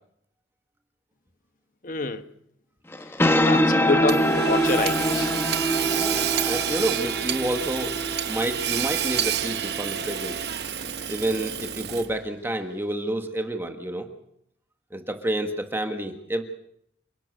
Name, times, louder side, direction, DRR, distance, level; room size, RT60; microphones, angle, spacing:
voice 1, 1.8-2.2 3.4-5.3, left 3 dB, 45° left, 1.3 m, -27 dB
sound 1, 2.9-10.1, equal, 15° left, 1.1 m, -25 dB
Hammer / Sawing, 4.1-12.3, right 9 dB, 60° right, 1.1 m, -29 dB
voice 2, 5.9-7.9 8.3-10.4 11.1-14.1 14.9-16.4, right 1 dB, 10° right, 1.6 m, -29 dB
28.5 x 12.0 x 8.0 m
head